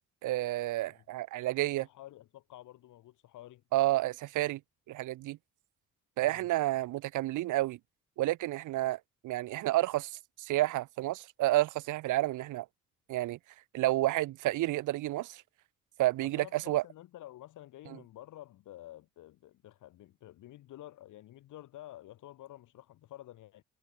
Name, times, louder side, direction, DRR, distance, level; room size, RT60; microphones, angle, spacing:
voice 1, 0.2-1.9 3.7-4.6 4.9-5.4 6.2-7.8 8.2-9.0 9.2-10.1 10.4-12.7 13.1-13.4 13.7-15.4 16.0-16.8, right 16 dB, 80° right, 0.9 m, -30 dB
voice 2, 1.8-3.6 6.2-6.5 16.4-23.6, left 14 dB, 85° left, 6.9 m, -50 dB
cardioid pair, 90°, 30 cm